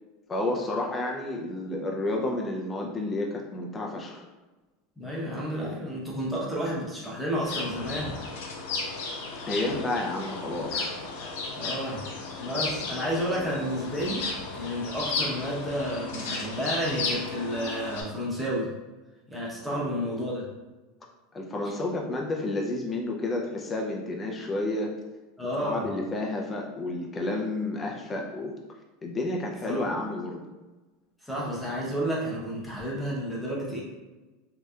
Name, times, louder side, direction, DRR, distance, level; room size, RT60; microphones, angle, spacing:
voice 1, 0.3-4.2 9.5-11.0 19.7-19.9 21.3-24.9 25.6-28.6 29.0-30.4 31.5-31.9, left 2 dB, 15° left, 0 dB, 0.4 m, -31 dB
voice 2, 5.0-8.2 11.6-12.1 12.4-14.3 14.5-18.7 19.3-20.5 25.4-25.9 29.7-29.8 31.2-33.8, equal, ahead, -6 dB, 0.7 m, -31 dB
sound 1, 7.4-18.0, left 3 dB, 80° left, 0.6 m, -34 dB
3.2 x 2.7 x 2.3 m, 1.2 s
supercardioid pair, 155°, 0 cm